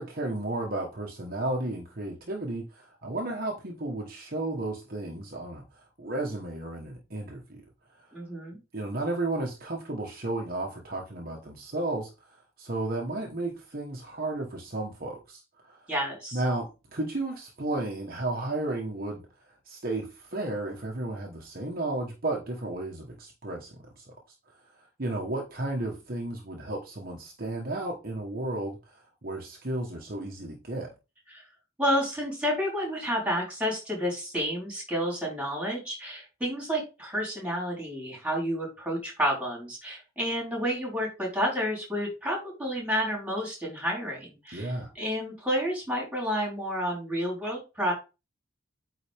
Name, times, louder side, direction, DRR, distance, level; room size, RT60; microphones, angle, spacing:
voice 1, 0.0-7.7 7.9-8.1 8.7-15.9 16.3-19.2 19.6-24.1 24.5-30.9 44.5-44.9, right 2 dB, 45° right, 1.3 m, -33 dB
voice 2, 8.1-8.6 15.9-16.4 31.3-31.4 31.8-47.9, equal, 5° right, 4.1 m, -30 dB
8.9 x 4.2 x 3.5 m
head